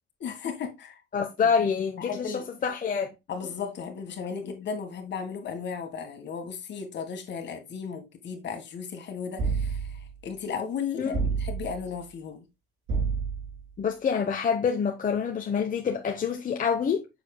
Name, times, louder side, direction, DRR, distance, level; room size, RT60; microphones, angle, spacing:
voice 1, 0.2-1.0 1.6-1.7 2.0-2.4 3.3-12.5, left 6 dB, 65° left, 1.7 m, -35 dB
voice 2, 1.1-3.1 11.0-11.3 13.8-17.0, left 6 dB, 45° left, 0.9 m, -27 dB
sound 1, 9.4-10.1 11.1-11.9 12.9-13.6, right 5 dB, 80° right, 3.9 m, -29 dB
6.8 x 6.7 x 2.2 m
cardioid pair, 90°, 20 cm